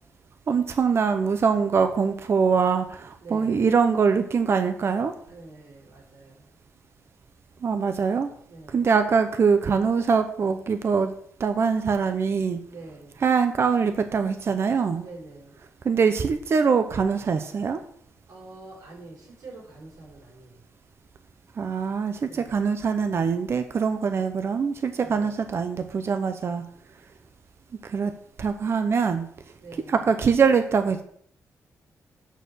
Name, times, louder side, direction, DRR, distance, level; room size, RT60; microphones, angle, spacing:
voice 1, 0.5-5.2 7.6-8.3 8.7-11.1 11.4-12.6 13.2-15.0 15.8-17.8 21.6-26.6 27.8-28.1 28.4-29.3 29.9-31.0, right 5 dB, 45° right, 8 dB, 0.7 m, -23 dB
voice 2, 3.2-3.8 5.2-6.5 8.5-8.9 12.6-13.2 14.9-15.6 18.3-20.7 22.2-22.6 25.0-25.4 29.6-30.1, right 2 dB, 85° right, -3 dB, 4.5 m, -46 dB
9.1 x 4.5 x 6.7 m, 0.62 s
wide cardioid pair, 135°, 6 cm